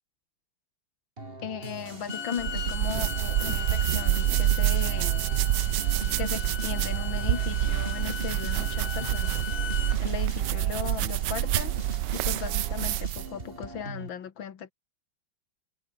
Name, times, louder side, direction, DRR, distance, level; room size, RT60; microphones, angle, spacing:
sound 1, 1.2-14.1, right 2 dB, 30° right, 4.4 m, -41 dB
voice 1, 1.4-5.3 6.2-9.4 10.0-11.8 12.1-14.7, left 8 dB, 85° left, 2.4 m, -37 dB
Bowed string instrument, 1.9-10.0, left 8 dB, 65° left, 2.1 m, -38 dB
sound 2, 2.4-13.3, right 14 dB, 75° right, 1.2 m, -27 dB
omnidirectional pair, 2.1 m